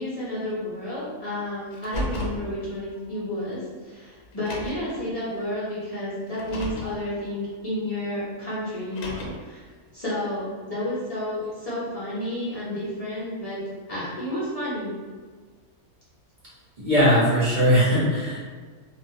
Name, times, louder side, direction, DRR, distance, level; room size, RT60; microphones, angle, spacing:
voice 1, 0.0-9.6 9.9-13.6 13.9-14.9, left 1 dB, 40° left, -10 dB, 0.5 m, -31 dB
Car, 1.7-2.4 3.5-3.6 4.3-4.9 6.3-6.9 8.8-9.5, left 1 dB, 75° left, 1.0 m, -33 dB
voice 2, 16.8-18.4, equal, 45° right, -9 dB, 0.6 m, -19 dB
2.4 x 2.1 x 2.7 m, 1.5 s
omnidirectional pair, 1.5 m